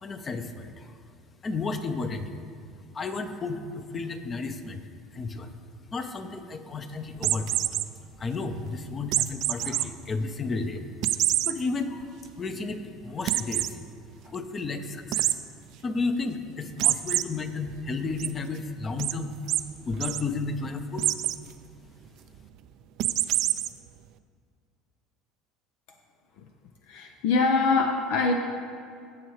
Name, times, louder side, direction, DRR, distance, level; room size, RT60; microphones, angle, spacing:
voice 1, 0.0-0.9 1.4-2.4 2.9-4.8 5.1-5.5 5.9-7.7 8.2-10.8 11.4-13.8 14.2-15.4 15.8-19.4 19.8-21.1, left 3 dB, 30° left, 8 dB, 0.8 m, -32 dB
sound 1, 7.2-7.9 9.1-9.8 10.3-10.4 11.0-11.5 12.0-12.1 12.4-12.5 13.3-13.7 15.1-15.3 16.8-17.2 17.7-18.3 19.0-19.1 19.5-19.6 19.9-20.2 21.0-21.4 23.0-23.7, right 14 dB, 65° right, 0.4 m, -25 dB
voice 2, 26.9-28.3, left 4 dB, 70° left, 4 dB, 0.7 m, -23 dB
16.0 x 6.4 x 3.2 m, 2.3 s
supercardioid pair, 95°, 0 cm